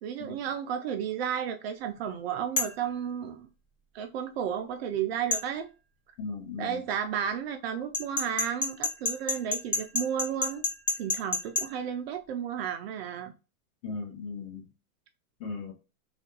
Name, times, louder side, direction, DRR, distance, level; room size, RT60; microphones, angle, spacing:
voice 1, 0.0-3.5 3.9-5.7 6.6-10.6 11.0-13.3, right 8 dB, 50° right, 0.4 m, -33 dB
sound 1, 2.6-2.8 5.3-5.5 7.9-11.7, left 3 dB, 10° left, 0.4 m, -28 dB
voice 2, 6.2-6.8 13.8-14.7 15.4-15.7, left 4 dB, 30° left, 1.4 m, -37 dB
3.3 x 2.4 x 2.7 m
hypercardioid pair, 125°, 43 cm